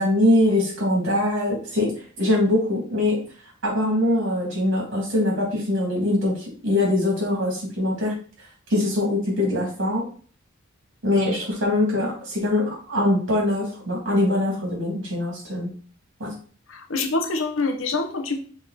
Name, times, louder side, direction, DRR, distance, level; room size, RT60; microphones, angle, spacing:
voice 1, 0.0-3.2 3.6-6.3 6.6-8.1 8.7-10.1 11.0-15.7 16.2-16.3, left 1 dB, 65° right, 3.0 m, -22 dB
voice 2, 16.7-18.4, left 3 dB, 75° left, 1.0 m, -25 dB
6.1 x 3.6 x 4.3 m
head